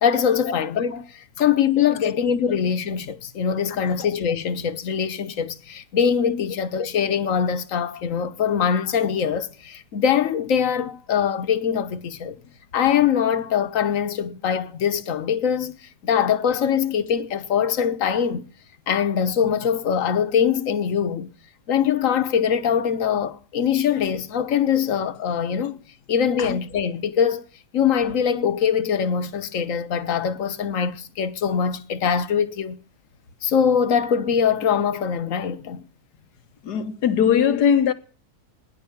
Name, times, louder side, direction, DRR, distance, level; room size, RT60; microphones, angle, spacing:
voice 1, 0.0-12.4 12.7-18.5 18.9-21.3 21.7-25.8 26.1-27.4 27.7-32.8 33.4-35.8, left 7 dB, 60° left, 1.3 m, -22 dB
voice 2, 36.6-37.9, left 8 dB, 90° left, 1.7 m, -19 dB
16.0 x 10.0 x 7.2 m
omnidirectional pair, 1.7 m